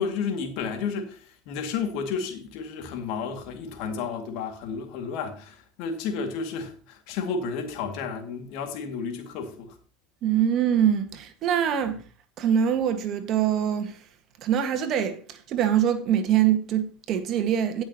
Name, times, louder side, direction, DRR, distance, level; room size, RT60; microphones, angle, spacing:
voice 1, 0.0-9.8, left 5 dB, 60° left, 2.2 m, -32 dB
voice 2, 10.2-12.0 12.4-14.0 14.4-17.8, right 9 dB, 50° right, 1.7 m, -24 dB
18.0 x 6.1 x 3.0 m
hypercardioid pair, 80°, 0 cm